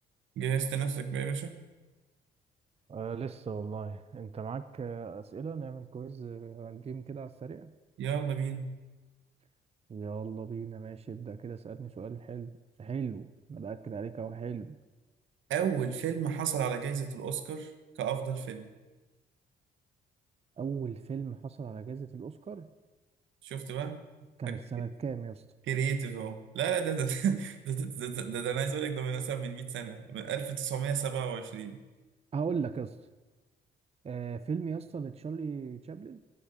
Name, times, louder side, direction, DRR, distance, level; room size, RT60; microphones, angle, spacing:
voice 1, 0.4-1.6 8.0-8.7 15.5-17.7 18.0-18.7 23.4-24.0 24.5-24.6 25.7-31.8, right 7 dB, 75° right, 9 dB, 1.4 m, -32 dB
voice 2, 2.9-7.7 9.9-12.5 12.8-14.8 20.6-22.7 24.4-25.4 32.3-33.0 34.0-36.2, right 6 dB, 30° right, 12 dB, 0.6 m, -38 dB
12.0 x 8.4 x 8.8 m, 1.2 s
cardioid pair, 90°, 20 cm